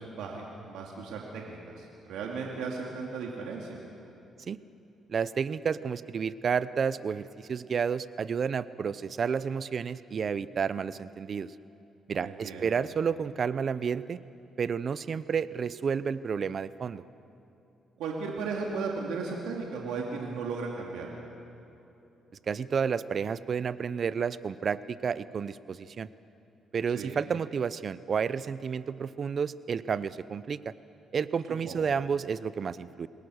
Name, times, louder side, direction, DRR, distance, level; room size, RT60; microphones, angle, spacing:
voice 1, 0.0-3.8 12.2-12.7 18.0-21.1 26.9-27.2 31.6-31.8, right 4 dB, 90° right, -1 dB, 2.6 m, -36 dB
voice 2, 5.1-11.5 12.1-14.2 14.6-17.0 22.5-26.1 26.7-30.7 31.1-33.1, right 6 dB, 50° right, 16 dB, 0.7 m, -31 dB
27.5 x 20.5 x 6.5 m, 2.9 s
cardioid pair, 90°, 0 cm